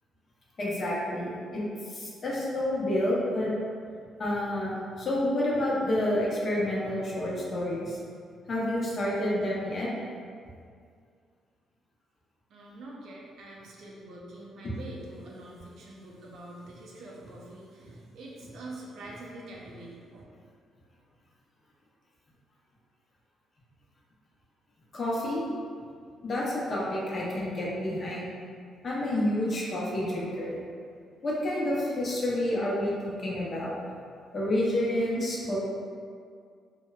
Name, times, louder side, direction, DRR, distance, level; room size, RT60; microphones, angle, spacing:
voice 1, 0.6-3.5 4.2-8.0 8.5-9.9 24.9-25.4 26.2-28.3 28.8-30.6 31.2-33.7 34.3-35.6, left 1 dB, 45° left, -5 dB, 0.6 m, -29 dB
voice 2, 12.5-20.2, right 1 dB, 70° right, -3 dB, 0.5 m, -45 dB
2.9 x 2.0 x 2.2 m, 2.2 s
cardioid pair, 90°, 0 cm